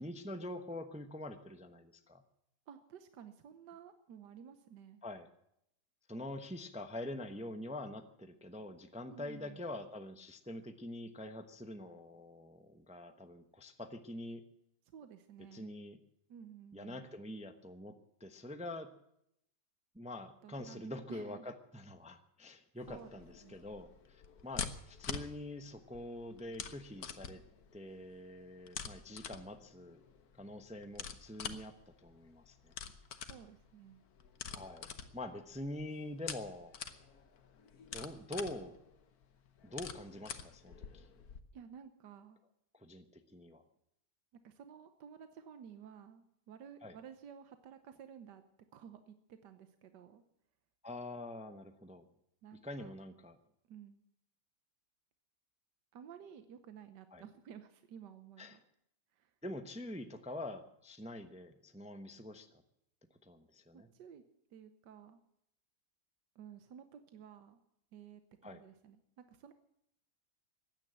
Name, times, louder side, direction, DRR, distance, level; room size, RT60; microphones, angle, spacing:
voice 1, 0.0-2.2 5.0-5.3 6.1-14.5 15.5-16.0 16.7-18.9 19.9-27.4 27.7-30.0 30.4-32.7 34.5-34.9 35.1-36.8 37.9-38.7 39.6-41.0 42.7-43.6 46.8-47.0 50.8-52.0 52.6-53.4 57.1-57.2 58.4-58.6 59.4-62.5 63.2-63.9 68.4-68.6, left 1 dB, 5° right, 7 dB, 0.7 m, -45 dB
voice 2, 2.7-5.0 9.1-9.6 14.9-15.8 16.3-17.1 20.4-21.5 22.9-23.7 33.3-34.0 41.5-42.4 44.4-48.4 48.7-50.2 52.4-52.9 53.7-54.0 55.9-58.6 59.1-59.3 63.7-64.2 64.5-65.2 66.3-67.6 67.9-69.5, right 8 dB, 80° right, 9 dB, 1.6 m, -53 dB
sound 1, 22.8-41.4, left 7 dB, 65° left, 1.5 m, -47 dB
15.5 x 10.5 x 8.0 m, 0.78 s
omnidirectional pair, 1.8 m